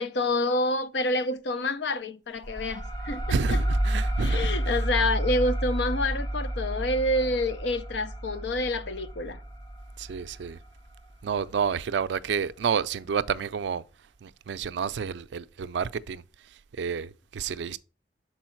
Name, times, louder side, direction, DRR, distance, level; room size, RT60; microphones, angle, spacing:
voice 1, 0.0-3.6 4.2-9.4, left 1 dB, 75° left, 0.6 m, -28 dB
sound 1, 2.4-11.7, right 1 dB, 25° left, 0.7 m, -30 dB
voice 2, 3.3-4.9 5.7-5.8 10.0-10.6 11.2-13.8 14.2-17.8, right 6 dB, 80° right, 0.4 m, -30 dB
6.3 x 4.6 x 4.4 m
head